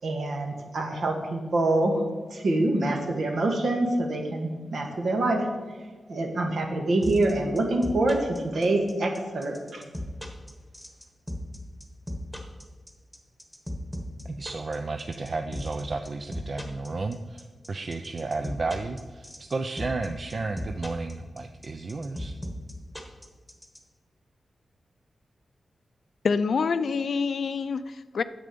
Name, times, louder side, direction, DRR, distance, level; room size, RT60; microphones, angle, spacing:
voice 1, 0.0-2.0 2.3-5.5 6.1-9.8, right 2 dB, 70° right, 3 dB, 1.8 m, -26 dB
sound 1, 7.0-23.8, left 1 dB, ahead, 1.5 m, -36 dB
voice 2, 14.2-22.4, right 3 dB, 45° right, 6 dB, 0.5 m, -33 dB
voice 3, 26.2-28.2, left 5 dB, 70° left, 14 dB, 0.4 m, -26 dB
9.8 x 7.7 x 5.3 m, 1.4 s
wide cardioid pair, 125°, 0 cm